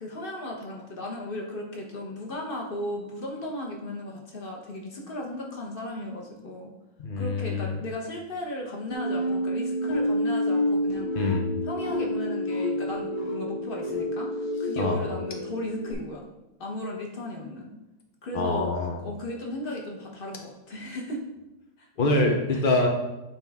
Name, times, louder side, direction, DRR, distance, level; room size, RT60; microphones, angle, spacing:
voice 1, 0.0-6.7 7.2-11.2 11.6-16.3 16.6-17.7 18.2-21.2 21.8-21.9 22.5-22.6, left 1 dB, 35° left, 0 dB, 1.0 m, -36 dB
voice 2, 7.0-7.7 11.2-11.4 14.8-15.0 18.3-19.0 22.0-22.9, left 2 dB, 90° left, 2 dB, 0.4 m, -25 dB
sound 1, 8.9-15.9, left 1 dB, 75° left, 2.2 m, -29 dB
8.6 x 4.3 x 3.5 m, 1.0 s
omnidirectional pair, 2.2 m